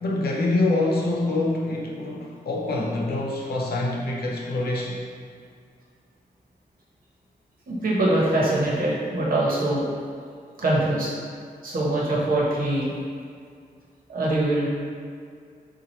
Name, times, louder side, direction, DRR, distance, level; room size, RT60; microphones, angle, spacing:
voice 1, 0.0-5.0, left 2 dB, 85° left, -2 dB, 0.7 m, -25 dB
voice 2, 7.7-9.8 10.6-11.1 11.6-12.9 14.1-14.7, right 1 dB, 65° right, -6 dB, 1.1 m, -23 dB
4.3 x 2.4 x 4.4 m, 2.2 s
wide cardioid pair, 120°, 16 cm